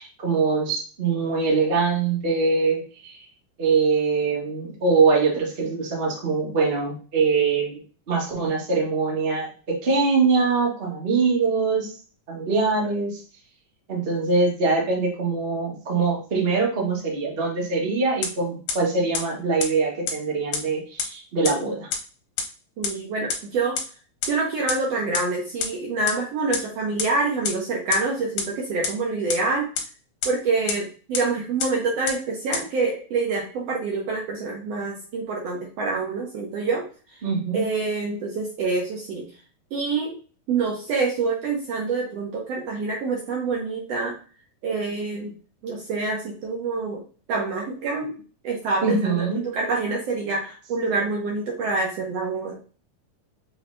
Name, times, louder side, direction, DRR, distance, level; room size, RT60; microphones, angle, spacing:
voice 1, 0.0-3.2 3.6-11.9 12.3-13.2 13.9-21.9 37.2-37.6 48.8-49.5, right 4 dB, 50° right, -3 dB, 0.6 m, -23 dB
sound 1, 18.2-18.3 18.7-18.8 19.1-19.2 19.6-19.7 20.1-20.2 20.5-20.6 21.0-21.1 21.5-21.6 21.9-22.0 22.4-22.5 22.8-22.9 23.3-23.4 23.8-23.9 24.2-24.3 24.7-24.8 25.1-25.2 25.6-25.7 26.1-26.2 26.5-26.6 27.0-27.1 27.5-27.6 27.9-28.0 28.4-28.5 28.8-28.9 29.3-29.4 29.8-29.9 30.2-30.3 30.7-30.8 31.1-31.2 31.6-31.7 32.1-32.2 32.5-32.6, left 6 dB, 75° left, 2.4 m, -25 dB
voice 2, 22.8-23.8 24.3-29.7 30.2-36.9 37.1-37.2 37.5-39.3 39.7-40.1 40.5-44.2 44.6-45.3 45.6-47.0 47.3-48.1 48.4-52.6, right 3 dB, 70° right, -1 dB, 1.6 m, -26 dB
6.0 x 3.2 x 2.6 m, 0.38 s
omnidirectional pair, 3.7 m